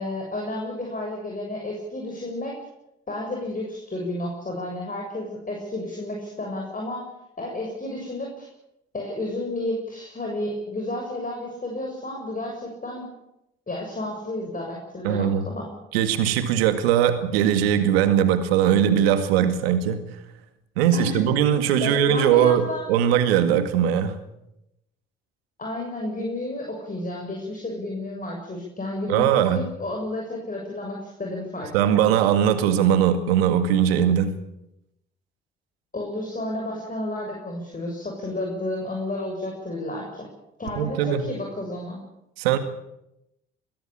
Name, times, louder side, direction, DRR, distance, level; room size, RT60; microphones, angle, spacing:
voice 1, 0.0-2.6 3.1-7.0 7.4-8.5 8.9-13.1 13.7-15.7 20.9-21.2 21.8-22.9 25.6-31.7 32.1-32.2 35.9-40.3 40.6-42.0, left 1 dB, 25° left, 0 dB, 7.0 m, -31 dB
voice 2, 15.0-15.5 15.9-20.1 20.8-24.2 29.1-29.6 31.7-34.4 40.8-41.3 42.4-42.6, right 9 dB, 85° right, 10 dB, 2.1 m, -20 dB
22.5 x 15.5 x 8.8 m, 0.85 s
hypercardioid pair, 55°, 29 cm